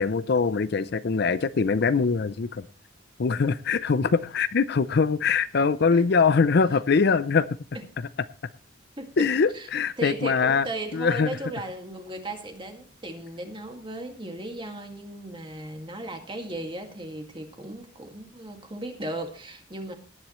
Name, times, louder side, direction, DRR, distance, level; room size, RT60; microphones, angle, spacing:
voice 1, 0.0-2.7 3.2-7.5 9.2-10.7 10.9-11.4, left 5 dB, 55° left, 15 dB, 0.5 m, -23 dB
voice 2, 9.0-9.7 10.0-19.9, right 1 dB, 25° right, 4 dB, 2.0 m, -36 dB
18.5 x 10.0 x 3.1 m, 0.40 s
head